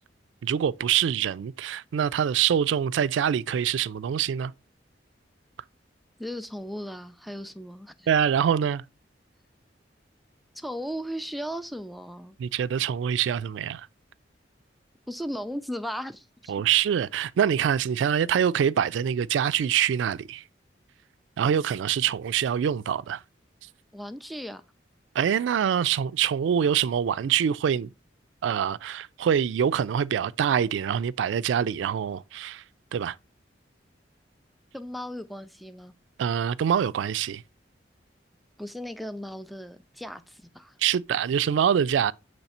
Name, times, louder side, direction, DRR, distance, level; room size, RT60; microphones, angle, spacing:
voice 1, 0.4-4.5 8.1-8.8 12.4-13.9 16.5-20.4 21.4-23.2 25.1-27.9 28.4-32.6 32.9-33.2 36.2-37.4 40.8-42.1, right 8 dB, 80° right, 0.3 m, -25 dB
voice 2, 6.2-8.1 10.5-12.4 15.1-16.5 23.9-24.6 34.7-35.9 38.6-40.8, equal, ahead, 0.3 m, -36 dB
7.1 x 3.2 x 4.2 m
head